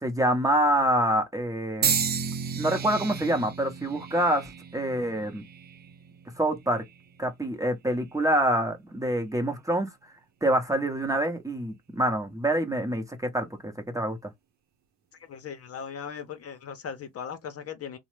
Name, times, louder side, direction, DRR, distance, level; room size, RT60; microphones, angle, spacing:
voice 1, 0.0-1.9 2.6-5.4 6.4-6.8 7.2-9.9 10.4-14.2, right 1 dB, 10° right, 0.8 m, -26 dB
sound 1, 1.8-6.0 6.7-7.1 8.1-8.2, right 7 dB, 35° right, 0.4 m, -33 dB
sound 2, 1.8-8.4, right 5 dB, 65° right, 0.8 m, -39 dB
voice 2, 15.2-18.0, left 7 dB, 50° left, 0.7 m, -38 dB
2.8 x 2.1 x 3.1 m
cardioid pair, 90°, 30 cm